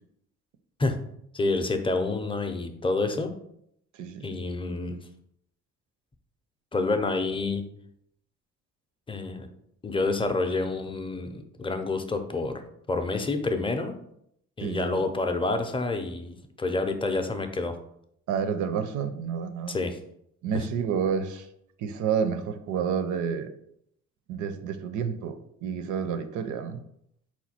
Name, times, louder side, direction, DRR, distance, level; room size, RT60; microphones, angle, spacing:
voice 1, 1.3-3.3 4.2-5.0 6.7-7.6 9.1-9.5 9.8-12.6 12.9-14.0 14.6-17.8 19.7-20.0, left 3 dB, 15° left, 7 dB, 0.5 m, -28 dB
voice 2, 3.9-4.4 14.6-15.0 18.3-19.8 20.4-21.5 21.8-23.5 24.3-25.4 25.6-26.8, right 7 dB, 75° right, 9 dB, 0.5 m, -29 dB
4.3 x 2.3 x 4.2 m, 0.73 s
cardioid pair, 90°, 30 cm